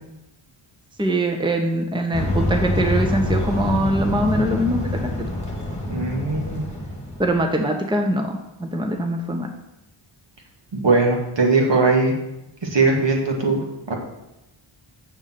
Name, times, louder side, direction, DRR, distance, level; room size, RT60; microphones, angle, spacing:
voice 1, 1.0-5.3 7.2-9.5, right 1 dB, 10° right, 4 dB, 1.0 m, -23 dB
sound 1, 2.1-7.5, left 1 dB, 15° left, 2.0 m, -26 dB
voice 2, 5.9-6.6 10.7-12.1 12.6-13.6 13.9-14.0, right 3 dB, 55° right, 0 dB, 2.3 m, -19 dB
7.2 x 6.7 x 7.6 m, 0.92 s
wide cardioid pair, 95°, 50 cm